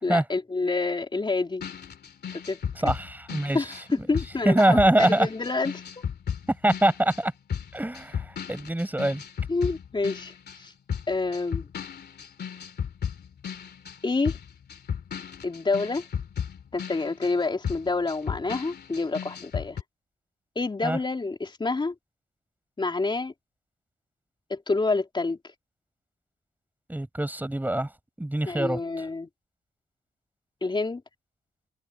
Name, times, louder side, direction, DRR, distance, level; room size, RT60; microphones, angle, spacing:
voice 1, 0.0-1.6 2.5-2.6 3.5-6.0 9.5-10.7 11.1-11.7 14.0-14.4 15.4-16.0 16.7-19.8 20.5-21.9 22.8-23.3 24.5-25.4 28.4-29.3 30.6-31.0, left 3 dB, 25° left, 3.4 m, -28 dB
sound 1, 1.6-10.6 10.9-19.8, left 7 dB, 55° left, 3.0 m, -35 dB
voice 2, 2.8-3.6 4.4-5.3 6.5-7.3 7.7-9.2 20.8-21.0 26.9-27.9 28.2-28.8, right 1 dB, 10° right, 6.6 m, -24 dB
cardioid pair, 90°, 20 cm